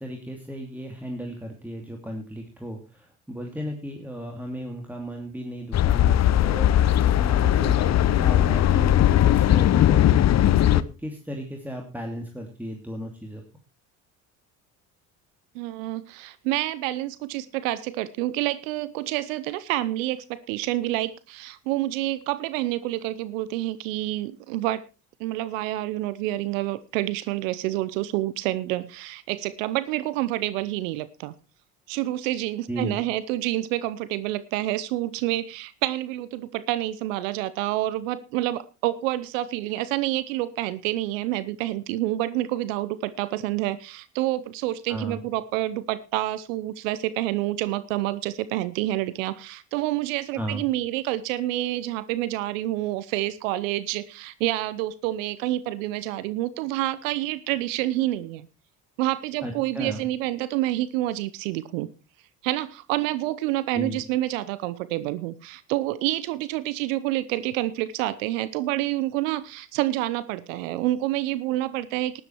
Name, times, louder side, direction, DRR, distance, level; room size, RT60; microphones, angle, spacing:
voice 1, 0.0-10.3 10.7-13.4 32.7-33.0 44.9-45.2 50.3-50.7 59.4-60.1 63.7-64.0, right 1 dB, 5° right, 2 dB, 2.7 m, -35 dB
sound 1, 5.7-10.8, left 12 dB, 40° left, 0.8 m, -19 dB
voice 2, 15.5-24.9 25.2-31.3 31.9-58.5 59.0-61.9 62.4-72.2, right 15 dB, 80° right, 17 dB, 0.8 m, -28 dB
12.5 x 11.5 x 4.5 m, 0.31 s
hypercardioid pair, 70°, 39 cm